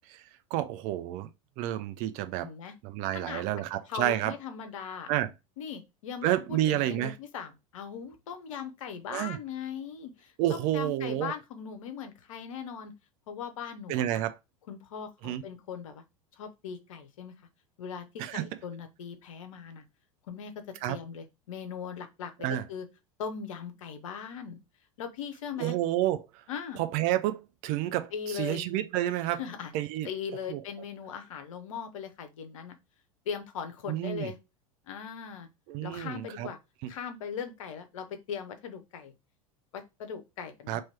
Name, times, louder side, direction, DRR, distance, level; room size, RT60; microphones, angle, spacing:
voice 1, 0.5-1.3 1.6-2.5 2.8-4.3 5.1-5.3 6.2-7.2 9.1-9.4 10.4-11.3 13.9-14.3 15.2-15.4 18.2-18.5 20.8-21.0 22.4-22.6 25.6-26.2 26.8-29.4 29.7-30.1 30.5-30.6 33.9-34.3 35.7-36.5 36.8-36.9 40.7-40.8, right 13 dB, 40° right, 0.5 m, -30 dB
voice 2, 2.4-2.7 3.1-3.4 3.9-5.1 5.6-12.9 13.3-14.2 14.7-16.0 16.4-17.3 17.8-19.8 20.3-22.9 23.2-24.6 25.0-25.8 26.5-26.8 28.1-28.7 29.3-29.7 30.0-32.8 33.3-34.4 34.9-35.5 35.8-36.6 36.9-39.1 39.7-40.8, left 7 dB, 60° left, 0.9 m, -39 dB
3.1 x 2.9 x 4.4 m
figure-of-eight pair, 80°, 19 cm